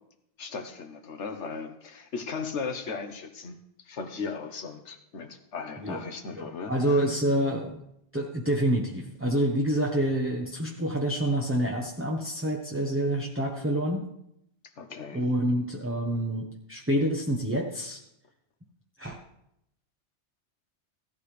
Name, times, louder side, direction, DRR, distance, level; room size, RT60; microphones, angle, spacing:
voice 1, 0.4-3.6 3.8-7.0 14.8-15.2, left 5 dB, 90° left, 7 dB, 1.5 m, -37 dB
voice 2, 6.3-7.8 8.1-14.0 15.1-18.0 19.0-19.2, right 1 dB, 10° right, -1 dB, 1.1 m, -27 dB
16.0 x 12.5 x 3.4 m, 0.79 s
omnidirectional pair, 1.2 m